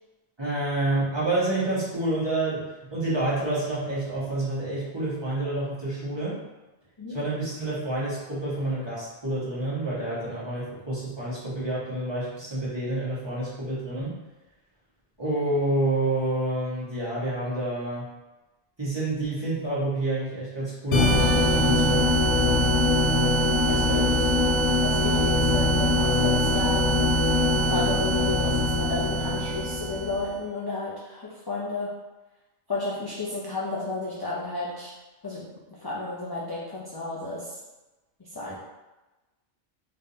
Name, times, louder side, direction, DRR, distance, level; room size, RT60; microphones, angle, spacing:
voice 1, 0.4-2.6 2.9-6.4 7.1-14.1 15.2-18.0 18.8-22.1 23.6-24.5, right 2 dB, 25° right, -10 dB, 1.2 m, -28 dB
sound 1, 20.9-30.3, left 1 dB, 80° left, 1.0 m, -22 dB
voice 2, 24.8-26.9 27.7-32.0 32.7-34.9 35.2-37.6 38.2-38.6, left 2 dB, 40° left, -7 dB, 0.3 m, -32 dB
3.5 x 3.1 x 2.7 m, 1.1 s
omnidirectional pair, 1.2 m